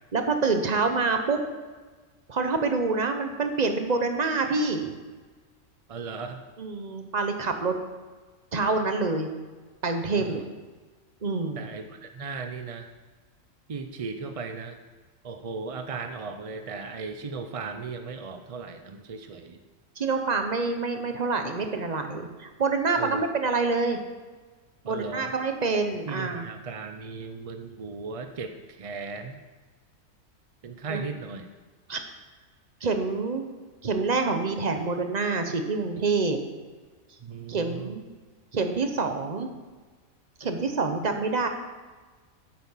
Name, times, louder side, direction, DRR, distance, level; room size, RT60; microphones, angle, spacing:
voice 1, 0.1-1.4 2.3-4.9 6.6-7.8 8.5-9.3 9.8-10.5 11.2-11.6 20.0-24.0 24.8-26.4 30.9-31.0 31.9-32.0 32.8-33.4 33.8-36.4 37.5-38.0 38.5-39.5 40.4-41.5, right 3 dB, 35° right, 6 dB, 0.9 m, -26 dB
voice 2, 5.9-6.4 10.2-10.5 11.6-12.9 13.7-14.8 15.2-19.6 23.0-23.3 24.8-25.3 26.1-29.4 30.6-31.5 37.2-38.0, right 4 dB, 55° right, 7 dB, 0.4 m, -37 dB
8.8 x 8.2 x 5.7 m, 1.3 s
omnidirectional pair, 1.4 m